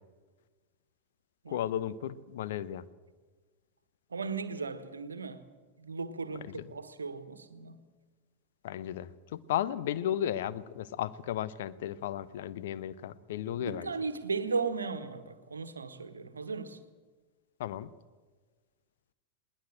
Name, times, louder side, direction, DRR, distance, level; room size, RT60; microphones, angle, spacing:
voice 1, 1.5-2.8 6.5-6.6 8.6-13.9 17.6-17.9, left 11 dB, 55° left, 0.8 m, -34 dB
voice 2, 4.1-5.4 5.8-7.8 13.6-16.8, right 4 dB, 75° right, 1.4 m, -36 dB
21.0 x 19.0 x 7.8 m
figure-of-eight pair, 90°, 0 cm